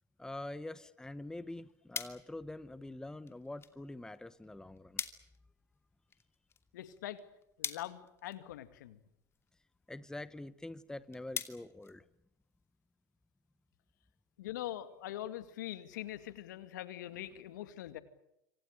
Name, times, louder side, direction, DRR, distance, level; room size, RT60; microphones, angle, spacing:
voice 1, 0.2-5.0 9.9-12.0, left 2 dB, 5° left, 15 dB, 1.1 m, -45 dB
sound 1, 1.2-12.7, left 6 dB, 25° left, 2.6 m, -47 dB
voice 2, 6.7-7.2 7.6-9.0 14.4-18.0, left 13 dB, 75° left, 11 dB, 2.2 m, -43 dB
27.5 x 26.0 x 6.7 m, 0.83 s
hypercardioid pair, 85°, 10 cm